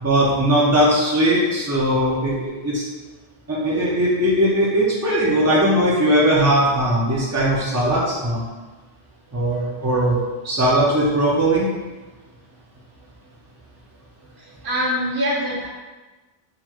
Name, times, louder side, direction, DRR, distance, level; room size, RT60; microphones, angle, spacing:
voice 1, 0.0-2.8 3.5-8.4 9.3-10.2 10.4-11.7, right 1 dB, 25° right, -5 dB, 0.3 m, -19 dB
voice 2, 14.4-15.7, equal, 70° right, -4 dB, 1.3 m, -24 dB
4.0 x 2.1 x 4.4 m, 1.2 s
omnidirectional pair, 1.1 m